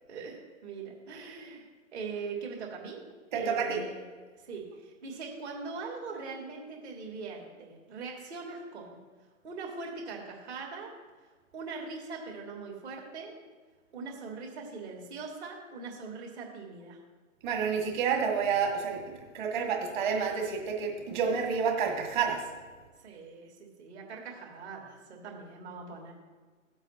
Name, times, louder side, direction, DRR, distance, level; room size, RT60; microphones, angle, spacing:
voice 1, 0.1-3.0 3.3-4.0 4.4-9.0 9.4-10.9 11.5-13.3 13.9-17.0 23.0-26.1, right 4 dB, 50° right, -1 dB, 3.1 m, -41 dB
voice 2, 3.3-3.8 17.4-19.0 19.3-22.4, right 6 dB, 35° right, 1 dB, 2.1 m, -29 dB
15.5 x 7.9 x 3.0 m, 1.4 s
hypercardioid pair, 140°, 42 cm